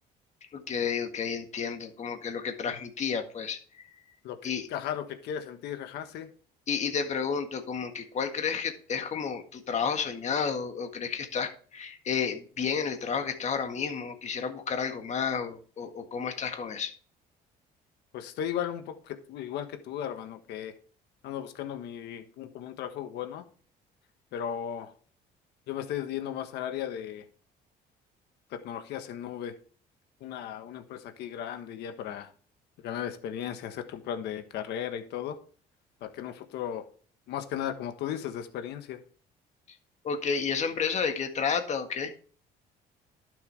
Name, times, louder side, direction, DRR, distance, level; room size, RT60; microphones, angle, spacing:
voice 1, 0.5-3.6 4.4-4.7 6.7-16.9 40.0-42.1, left 6 dB, 45° left, 6 dB, 1.7 m, -31 dB
voice 2, 4.2-6.3 18.1-20.7 21.2-23.4 24.3-24.9 25.7-27.2 28.5-29.5 30.2-32.3 32.8-35.4 36.0-36.9 37.3-39.0, left 9 dB, 80° left, 7 dB, 1.4 m, -36 dB
12.0 x 7.0 x 3.4 m, 0.43 s
cardioid pair, 110°, 17 cm